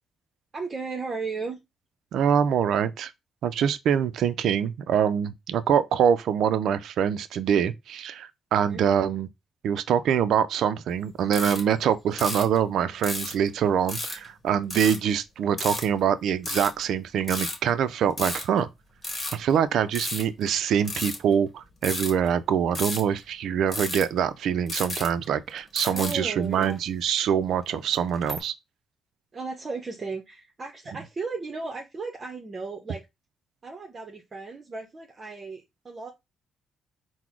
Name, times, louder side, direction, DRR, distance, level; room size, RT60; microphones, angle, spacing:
voice 1, 0.5-1.6 8.7-8.8 25.9-26.8 29.3-33.0 33.6-36.1, right 4 dB, 35° right, 0.8 m, -35 dB
voice 2, 2.1-3.1 3.4-9.3 9.6-18.7 19.3-28.5, right 8 dB, 75° right, 0.4 m, -24 dB
sound 1, 11.3-11.7 12.2-12.6 13.0-13.5 13.9-14.3 14.7-15.0 15.6-15.9 16.4-16.8 17.3-17.7 18.1-18.6 19.0-20.5 20.8-21.2 21.8-22.3 22.7-23.2 23.7-24.2 24.7-25.5 25.8-26.1 26.5-26.7 27.7-28.4, left 2 dB, 30° left, 1.3 m, -32 dB
4.0 x 2.1 x 4.4 m
cardioid pair, 90°, 0 cm